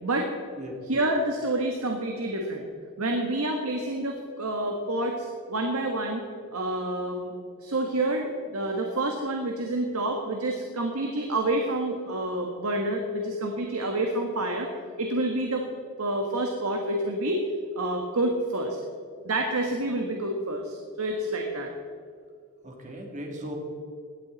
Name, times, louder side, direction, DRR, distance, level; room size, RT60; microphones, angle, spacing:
voice 1, 0.0-0.3 0.9-2.7 3.0-6.2 6.5-7.3 7.6-14.7 15.0-15.7 16.0-17.4 17.7-18.8 19.2-21.7, right 1 dB, 85° right, 2 dB, 1.6 m, -28 dB
voice 2, 22.6-23.6, equal, 35° right, 1 dB, 2.8 m, -37 dB
18.0 x 12.5 x 4.2 m, 2.3 s
head